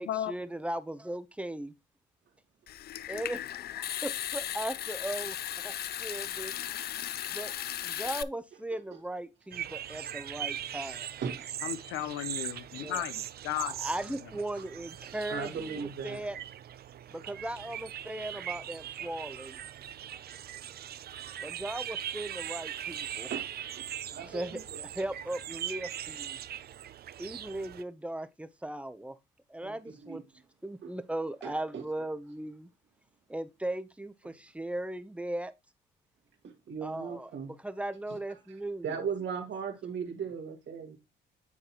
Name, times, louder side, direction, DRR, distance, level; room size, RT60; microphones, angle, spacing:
voice 1, 0.0-1.7 3.1-3.4 3.7-5.4 5.6-6.6 7.3-7.5 7.8-11.1 12.8-13.0 13.7-15.8 16.0-16.4 17.1-19.6 21.4-23.3 24.3-26.4 27.2-29.2 29.5-30.2 30.6-32.7 33.3-35.5 36.8-37.3 37.6-38.9, right 1 dB, 5° right, 0.7 m, -38 dB
Water tap faucet / Sink (filling or washing) / Trickle dribble, 2.7-8.2, left 11 dB, 55° left, 0.4 m, -36 dB
sound 1, 9.5-27.8, right 10 dB, 55° right, 0.5 m, -40 dB
voice 2, 11.6-13.7, left 12 dB, 90° left, 0.7 m, -34 dB
voice 3, 15.0-16.5 23.0-24.8 29.6-30.2 30.8-30.9 31.4-31.9 34.2-34.3 36.4-37.5 38.8-41.0, right 6 dB, 70° right, 1.9 m, -38 dB
9.2 x 3.9 x 2.9 m
cardioid pair, 90°, 20 cm